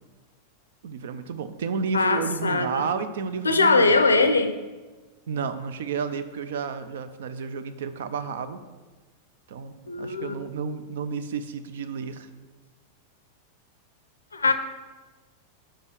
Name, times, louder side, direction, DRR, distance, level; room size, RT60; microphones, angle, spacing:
voice 1, 0.8-4.0 5.3-8.6 9.5-12.3, right 5 dB, 60° right, 11 dB, 0.5 m, -31 dB
voice 2, 1.9-2.8 3.4-4.6 9.9-10.3 14.3-14.5, left 3 dB, 75° left, 10 dB, 0.4 m, -21 dB
5.4 x 4.9 x 6.2 m, 1.3 s
figure-of-eight pair, 90°, 0 cm